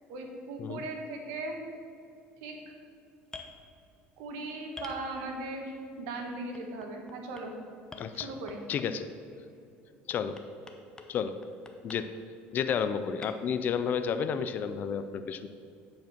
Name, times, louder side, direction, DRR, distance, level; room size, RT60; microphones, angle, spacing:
voice 1, 0.1-1.6 2.4-2.6 4.2-7.5 8.1-8.6, right 2 dB, 85° right, 3 dB, 1.5 m, -38 dB
sound 1, 3.3-3.5 4.8-5.6 6.5-7.4 7.9-9.1 10.1-11.1 11.4-12.0 13.2-13.3, left 3 dB, 15° left, 0.9 m, -46 dB
voice 2, 8.0-8.3 8.7-9.1 10.1-10.4 11.1-11.4 11.8-12.1 12.5-15.5, left 7 dB, 45° left, 10 dB, 0.5 m, -31 dB
9.3 x 5.1 x 5.9 m, 2.5 s
cardioid pair, 120°, 4 cm